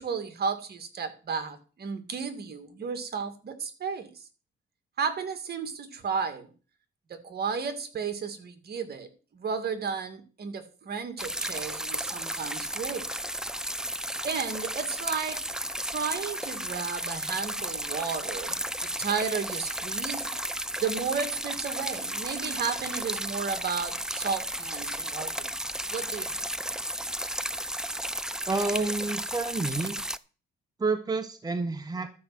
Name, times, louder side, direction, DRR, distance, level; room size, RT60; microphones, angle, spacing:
voice 1, 0.0-4.1 5.0-6.5 7.1-9.1 9.3-13.1 14.2-15.4 15.8-20.3 20.8-25.5 25.9-26.3, right 6 dB, 55° right, 2.3 m, -33 dB
sound 1, 11.2-30.2, right 1 dB, 5° right, 0.5 m, -33 dB
voice 2, 28.5-30.0 30.8-32.1, right 3 dB, 20° right, 1.4 m, -29 dB
12.5 x 5.3 x 7.7 m
cardioid pair, 90°, 20 cm